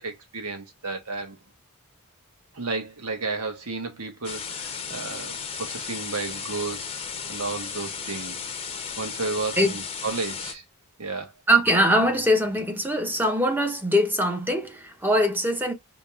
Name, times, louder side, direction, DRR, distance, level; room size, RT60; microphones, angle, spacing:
voice 1, 0.0-1.4 2.5-6.9 7.3-8.3 9.0-10.6 11.0-11.3, right 3 dB, 85° right, 1.4 m, -32 dB
sound 1, 4.2-10.5, left 6 dB, 25° left, 0.8 m, -35 dB
voice 2, 11.5-15.7, equal, 10° right, 1.0 m, -22 dB
5.1 x 3.0 x 2.4 m
head